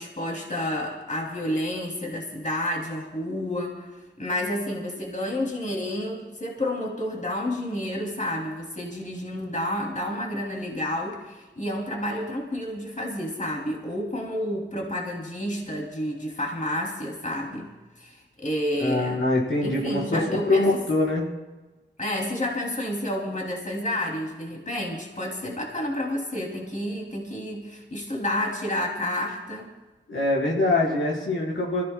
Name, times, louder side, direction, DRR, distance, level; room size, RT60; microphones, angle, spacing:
voice 1, 0.0-3.9 4.2-17.7 18.0-19.2 19.6-20.7 22.0-29.7, left 1 dB, 40° left, -1 dB, 2.7 m, -30 dB
voice 2, 18.8-21.3 30.1-31.8, left 2 dB, 90° left, -5 dB, 4.1 m, -24 dB
25.5 x 15.0 x 2.2 m, 1.2 s
cardioid pair, 40°, 19 cm